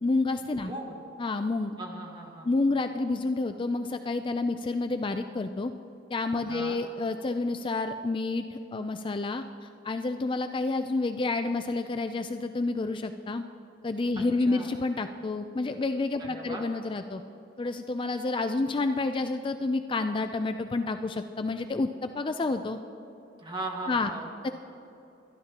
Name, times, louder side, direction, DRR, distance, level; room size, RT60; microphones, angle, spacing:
voice 1, 0.0-0.7 1.2-1.7 2.4-5.7 6.1-13.4 13.8-17.2 17.6-22.8 23.9-24.1 24.4-24.5, left 3 dB, 25° left, 8 dB, 0.4 m, -29 dB
voice 2, 0.6-0.9 1.8-2.5 6.5-6.8 14.2-14.7 16.2-16.6 23.4-24.3, right 2 dB, 25° right, 0 dB, 1.6 m, -38 dB
23.5 x 11.0 x 2.9 m, 2.8 s
head